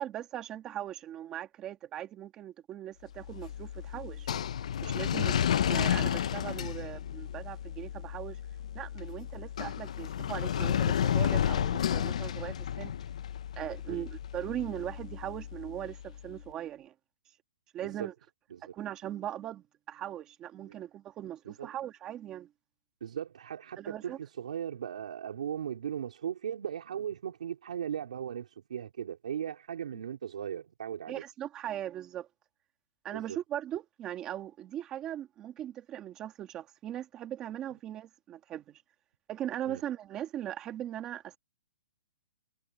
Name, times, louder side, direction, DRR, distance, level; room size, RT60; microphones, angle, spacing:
voice 1, 0.0-4.3 4.8-5.3 5.7-8.4 8.7-12.9 13.6-16.9 17.7-18.1 18.7-22.5 23.8-24.2 29.9-30.0 31.1-32.3 33.0-38.8 39.3-41.4, right 11 dB, 15° right, 2.2 m, -39 dB
sound 1, 3.1-16.2, left 9 dB, 50° left, 0.7 m, -32 dB
voice 2, 23.0-31.2 33.1-33.4 39.7-39.8, right 9 dB, 60° right, 3.9 m, -38 dB
hypercardioid pair, 175°, 4 cm